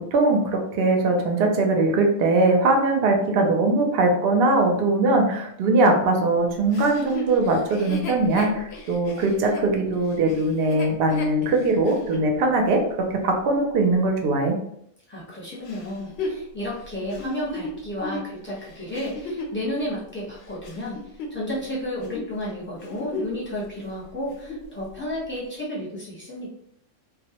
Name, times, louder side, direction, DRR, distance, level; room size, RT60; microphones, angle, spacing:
voice 1, 0.0-12.8 13.1-14.6, right 2 dB, 60° right, 2 dB, 0.7 m, -21 dB
Chuckle chortle, 6.7-12.3 12.9-13.0 15.7-19.6 20.2-21.7 22.0-22.3 22.7-23.5 23.8-23.9 24.2-24.7 25.4-25.5, left 2 dB, 65° left, 0.7 m, -35 dB
voice 2, 15.1-26.5, left 1 dB, 10° left, -7 dB, 0.7 m, -32 dB
2.3 x 2.1 x 2.8 m, 0.72 s
omnidirectional pair, 1.3 m